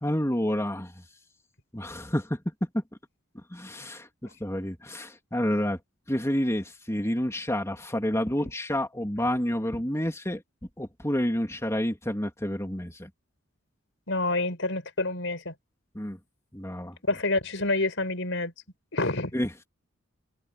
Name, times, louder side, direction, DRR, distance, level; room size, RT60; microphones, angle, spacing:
voice 1, 0.0-1.0 1.7-2.4 2.7-2.8 3.5-4.1 4.4-5.8 6.1-10.4 10.8-13.1 15.9-16.2 16.5-17.0 19.3-19.5, equal, 15° left, 3.4 m, -29 dB
voice 2, 14.1-15.5 17.1-18.5 18.9-19.3, left 2 dB, 70° left, 5.8 m, -27 dB
head